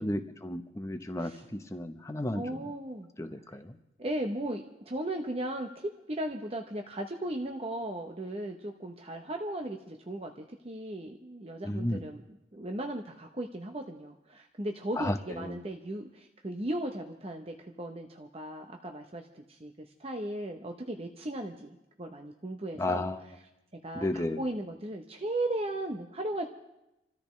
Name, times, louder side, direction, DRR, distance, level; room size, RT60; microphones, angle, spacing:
voice 1, 0.0-2.6 3.2-3.8 11.6-12.0 15.0-15.6 22.8-23.2 23.9-24.4, left 1 dB, 15° left, 7 dB, 0.8 m, -33 dB
voice 2, 2.3-3.1 4.0-12.2 12.5-23.1 23.8-26.5, right 1 dB, 30° right, 4 dB, 0.8 m, -36 dB
28.5 x 13.5 x 3.2 m, 0.91 s
head